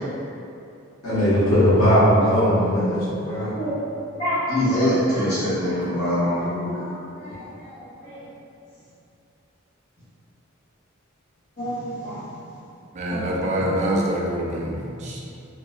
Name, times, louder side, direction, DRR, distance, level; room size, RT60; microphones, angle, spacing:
voice 1, 1.0-3.0 3.3-3.5, equal, 80° left, -13 dB, 0.7 m, -18 dB
voice 2, 2.4-2.8 3.5-3.8 4.2-8.2 11.6-12.2 13.1-13.2 15.0-15.2, equal, 50° left, -15 dB, 1.1 m, -25 dB
voice 3, 12.9-15.2, right 1 dB, 35° right, -3 dB, 0.3 m, -25 dB
2.9 x 2.0 x 2.3 m, 2.6 s
head